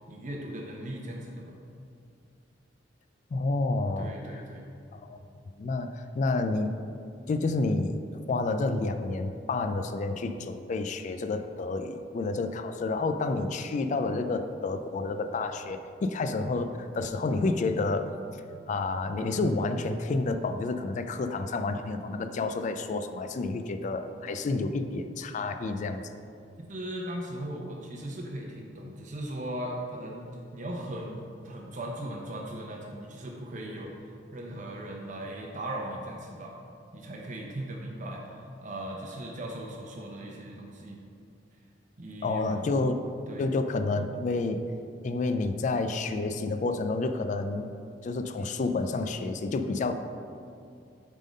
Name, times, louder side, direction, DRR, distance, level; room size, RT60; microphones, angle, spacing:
voice 1, 0.1-1.5 4.0-4.7 26.7-36.5 36.9-41.0 42.0-42.8 43.3-43.5, right 1 dB, 45° right, -1 dB, 0.7 m, -38 dB
voice 2, 3.3-4.4 4.9-5.2 5.6-6.7 7.3-8.0 8.3-18.2 18.7-26.0 42.2-43.0 43.4-44.6 45.0-47.7 48.0-49.9, left 3 dB, 40° left, 9 dB, 0.3 m, -29 dB
7.4 x 3.7 x 5.2 m, 2.4 s
head